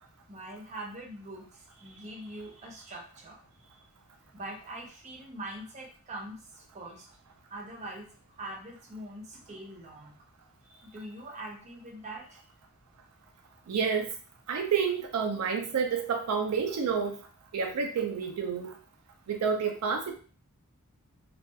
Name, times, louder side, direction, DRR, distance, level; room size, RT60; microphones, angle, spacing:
voice 1, 0.3-3.4 3.7-3.8 4.3-7.1 7.5-10.2 10.7-12.4, right 1 dB, 30° right, -1 dB, 0.6 m, -43 dB
voice 2, 13.7-14.1 14.5-17.2 17.5-18.7 19.3-20.1, right 6 dB, 75° right, 4 dB, 0.4 m, -29 dB
2.7 x 2.3 x 2.2 m, 0.40 s
head